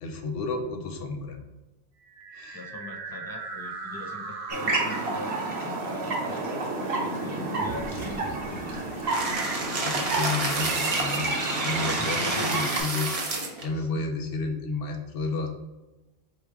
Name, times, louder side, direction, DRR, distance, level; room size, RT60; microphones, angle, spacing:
voice 1, 0.0-1.4 2.3-2.6 9.8-11.3 11.6-15.5, left 3 dB, 70° left, 4 dB, 0.8 m, -32 dB
sound 1, 2.0-10.0, right 4 dB, 85° right, 0.9 m, -38 dB
voice 2, 2.5-6.5 6.8-8.8 12.0-12.6 13.7-14.2, left 2 dB, 35° left, 1 dB, 0.3 m, -42 dB
sound 2, 4.5-12.8, right 2 dB, 65° right, 1.1 m, -30 dB
sound 3, 9.1-13.6, right 2 dB, 40° right, 0.6 m, -29 dB
3.4 x 2.9 x 4.6 m, 1.1 s
omnidirectional pair, 1.1 m